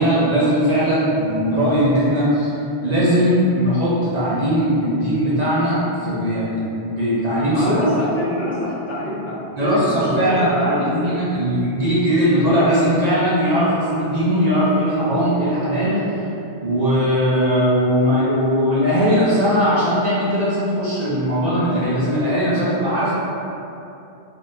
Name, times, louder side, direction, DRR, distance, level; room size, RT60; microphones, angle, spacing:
voice 1, 0.0-2.5 2.8-7.6 9.6-16.2 16.6-23.1, equal, 45° right, -9 dB, 0.7 m, -19 dB
voice 2, 7.5-11.1, left 1 dB, 10° right, -15 dB, 1.4 m, -24 dB
4.0 x 2.8 x 2.6 m, 2.7 s
omnidirectional pair, 1.1 m